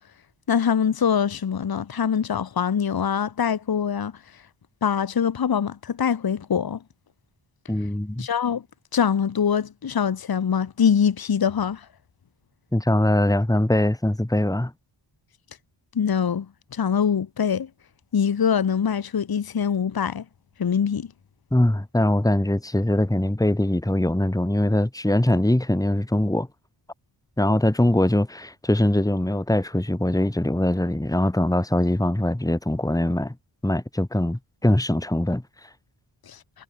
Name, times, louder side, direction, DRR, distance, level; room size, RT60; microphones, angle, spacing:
voice 1, 0.5-4.1 4.8-6.8 8.2-8.6 8.9-11.9 15.9-17.7 18.1-20.2 20.6-21.1 36.3-36.4, left 7 dB, 45° left, 1.1 m, -23 dB
voice 2, 7.7-8.3 12.7-14.7 21.5-26.5 27.4-33.4 33.6-35.7, left 1 dB, 5° left, 2.3 m, -22 dB
cardioid pair, 65°, 50 cm